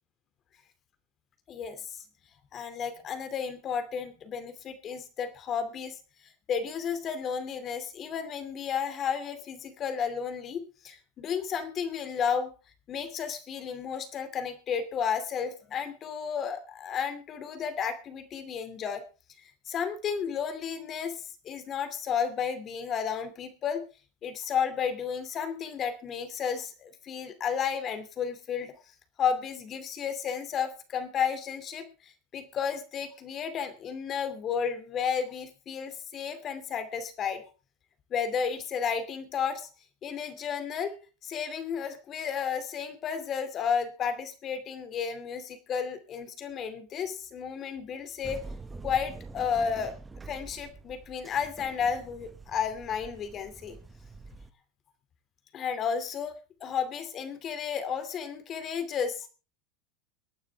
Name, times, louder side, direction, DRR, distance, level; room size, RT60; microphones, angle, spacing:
voice 1, 1.5-2.0 2.5-5.9 6.5-12.5 12.9-19.0 19.7-23.8 24.2-28.7 29.2-37.4 38.1-39.7 40.0-41.0 41.2-48.4 48.8-49.9 50.3-53.8 55.5-59.3, left 7 dB, 35° left, 10 dB, 2.6 m, -32 dB
sound 1, 48.2-54.5, right 3 dB, 15° right, 1.2 m, -45 dB
23.5 x 9.3 x 3.5 m, 0.34 s
hypercardioid pair, 105°, 0 cm